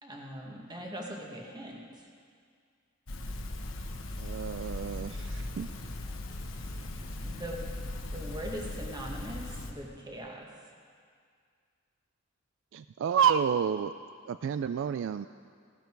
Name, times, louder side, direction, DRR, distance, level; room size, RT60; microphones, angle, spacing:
voice 1, 0.0-2.1 7.2-7.7 8.1-10.5, equal, 20° right, -1 dB, 1.7 m, -41 dB
sound 1, 3.1-9.7, left 1 dB, 75° left, 1.2 m, -38 dB
voice 2, 4.2-5.7 12.7-13.9 14.3-15.3, right 7 dB, 65° right, 12 dB, 0.3 m, -29 dB
16.0 x 12.0 x 4.6 m, 2.1 s
head